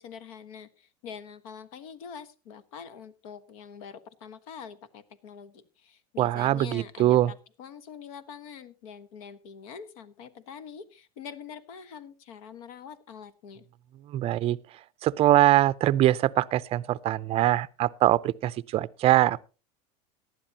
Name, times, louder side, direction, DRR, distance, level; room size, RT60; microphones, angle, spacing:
voice 1, 0.0-13.7, left 7 dB, 70° left, 1.4 m, -45 dB
voice 2, 6.2-7.3 14.1-14.6 15.0-19.4, right 14 dB, 30° right, 0.5 m, -23 dB
18.0 x 11.5 x 2.8 m
supercardioid pair, 135°, 19 cm